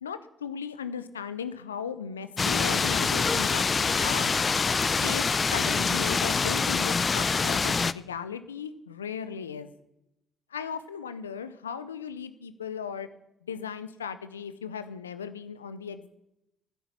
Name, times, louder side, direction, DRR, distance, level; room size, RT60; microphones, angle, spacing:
voice 1, 0.0-4.4 5.0-5.3 5.5-9.7 10.5-13.1 13.4-16.1, left 7 dB, 90° left, 12 dB, 0.5 m, -37 dB
sound 1, 2.4-7.9, left 5 dB, 35° left, 0.5 m, -25 dB
10.5 x 10.0 x 8.4 m, 0.84 s
hypercardioid pair, 45°, 0 cm